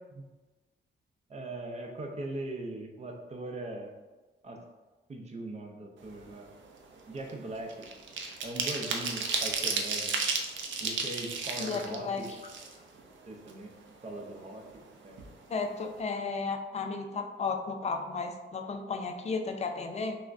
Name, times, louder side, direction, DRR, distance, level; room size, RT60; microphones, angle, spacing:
voice 1, 1.3-3.9 4.4-4.6 5.1-6.5 7.1-7.9 8.4-10.2 10.8-12.3 13.3-13.7 14.0-15.2, right 2 dB, 35° right, 2 dB, 0.5 m, -40 dB
sound 1, 6.1-6.3 6.7-13.1 13.5-13.6 13.9-14.9 15.2-15.3 15.6-15.9, right 4 dB, 80° right, 0.5 m, -33 dB
voice 2, 11.6-12.2 15.5-20.2, left 4 dB, 35° left, 5 dB, 0.4 m, -34 dB
5.7 x 2.1 x 2.5 m, 1.2 s
wide cardioid pair, 145°, 20 cm